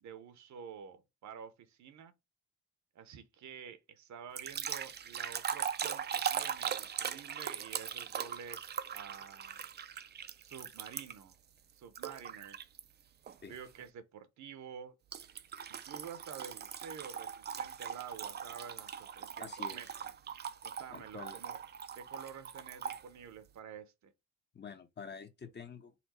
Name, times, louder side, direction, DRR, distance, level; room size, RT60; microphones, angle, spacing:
voice 1, 0.0-2.1 2.9-9.7 10.4-11.4 11.7-12.6 13.5-14.9 15.7-20.1 20.6-21.6 21.9-24.1, right 7 dB, 65° right, 0.9 m, -49 dB
sound 1, 4.4-11.3 12.0-12.8 13.3-13.6 15.1-23.0, right 8 dB, 35° right, 0.4 m, -40 dB
voice 2, 19.4-19.8 20.9-21.4 24.5-25.9, left 6 dB, 35° left, 0.9 m, -47 dB
4.2 x 2.3 x 4.2 m
cardioid pair, 90°, 30 cm